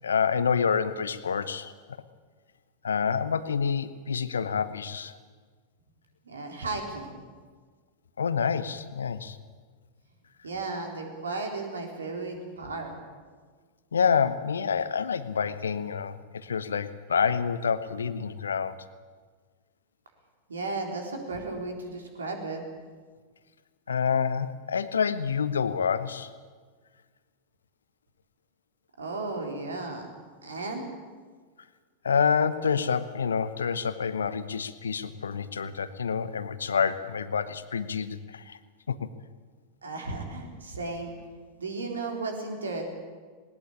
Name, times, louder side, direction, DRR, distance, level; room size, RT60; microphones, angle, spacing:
voice 1, 0.0-1.7 2.8-5.1 8.2-9.4 13.9-18.8 23.9-26.3 32.0-38.6 38.9-39.1, left 6 dB, 70° left, 14 dB, 1.0 m, -27 dB
voice 2, 6.2-7.2 10.4-13.0 20.5-22.6 29.0-30.1 30.4-30.8 39.8-41.1 41.6-42.8, right 3 dB, 70° right, 2 dB, 3.8 m, -34 dB
19.5 x 19.0 x 8.6 m, 1.5 s
figure-of-eight pair, 90°, 0 cm